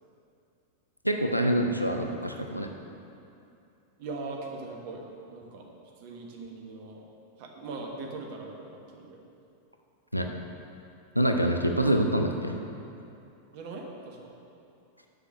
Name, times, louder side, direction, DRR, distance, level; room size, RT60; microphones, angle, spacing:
voice 1, 1.0-2.7 10.1-10.3 11.1-12.5, right 1 dB, 90° left, 4 dB, 0.5 m, -26 dB
voice 2, 4.0-5.0 5.3-5.7 6.0-7.0 7.4-9.2 13.5-14.3, right 3 dB, 50° right, 1 dB, 1.2 m, -40 dB
6.7 x 6.0 x 6.3 m, 2.6 s
figure-of-eight pair, 90°, 0 cm